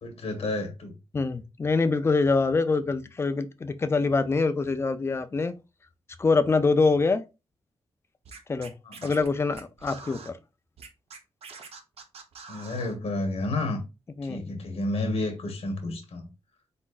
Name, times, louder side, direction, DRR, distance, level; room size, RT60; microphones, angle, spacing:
voice 1, 0.0-0.9 8.8-9.1 12.5-13.8 14.2-16.3, left 2 dB, 75° left, 1.3 m, -31 dB
voice 2, 1.1-5.5 6.2-7.2 8.5-8.7 9.0-10.4 14.2-14.6, left 4 dB, 25° left, 0.4 m, -24 dB
Scratching (performance technique), 8.2-10.3 10.8-13.0, right 5 dB, 75° right, 0.9 m, -45 dB
4.2 x 4.2 x 2.4 m
wide cardioid pair, 175°, 10 cm